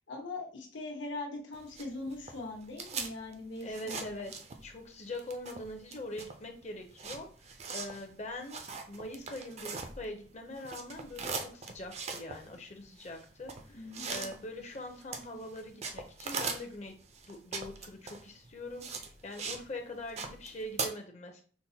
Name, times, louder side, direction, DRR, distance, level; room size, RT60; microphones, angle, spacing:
voice 1, 0.1-4.2 13.7-14.3, left 2 dB, 85° left, 1 dB, 1.1 m, -41 dB
sound 1, 1.5-4.8 5.1-10.3 10.5-19.7 19.9-20.9, right 4 dB, 35° right, 0.4 m, -40 dB
voice 2, 3.6-4.3 4.6-16.9 17.3-21.4, left 1 dB, 35° left, 4 dB, 0.6 m, -43 dB
5.8 x 2.1 x 2.7 m, 0.43 s
head